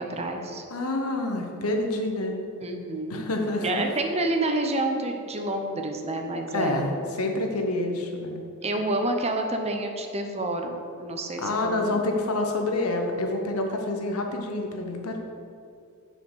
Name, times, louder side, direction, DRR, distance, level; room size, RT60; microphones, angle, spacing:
voice 1, 0.0-0.6 2.6-3.3 3.6-7.0 8.6-12.1, right 2 dB, 30° right, 4 dB, 0.8 m, -29 dB
voice 2, 0.7-2.4 3.1-3.8 6.5-8.4 11.4-15.2, left 2 dB, 90° left, 3 dB, 1.1 m, -27 dB
7.2 x 5.7 x 6.3 m, 2.4 s
head